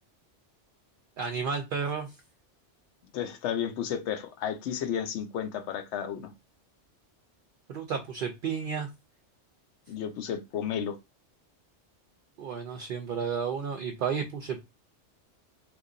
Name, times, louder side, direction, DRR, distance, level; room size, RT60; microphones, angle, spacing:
voice 1, 1.2-2.2 7.7-8.9 12.4-14.6, right 6 dB, 60° right, 0.6 m, -32 dB
voice 2, 3.1-6.3 9.9-11.0, left 8 dB, 75° left, 0.9 m, -32 dB
3.0 x 2.5 x 3.7 m
omnidirectional pair, 1.2 m